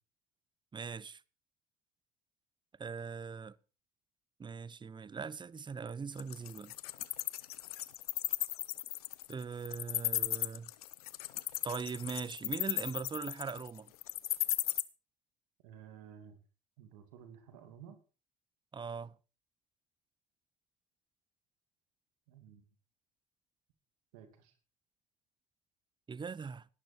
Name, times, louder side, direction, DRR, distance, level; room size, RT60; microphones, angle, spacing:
voice 1, 0.7-1.2 2.8-3.5 4.4-6.7 9.3-10.7 11.6-13.9 18.7-19.1 26.1-26.7, right 5 dB, 25° right, 0.8 m, -41 dB
Wild animals, 6.2-14.8, left 16 dB, 85° left, 0.8 m, -35 dB
voice 2, 15.6-16.4 16.8-18.0 22.3-22.7 24.1-24.5, right 8 dB, 80° right, 2.5 m, -53 dB
17.5 x 11.5 x 4.4 m
hypercardioid pair, 70°, 19 cm